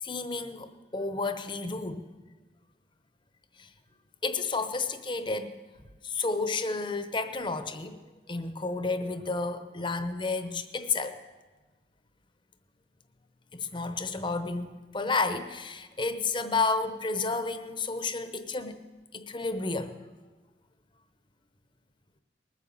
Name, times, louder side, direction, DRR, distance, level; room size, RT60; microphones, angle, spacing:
voice 1, 0.0-2.1 3.6-3.7 4.2-5.6 6.0-8.0 8.3-11.2 13.5-18.8 19.1-20.0, left 3 dB, 30° left, 10 dB, 0.9 m, -31 dB
20.0 x 9.2 x 7.2 m, 1.3 s
head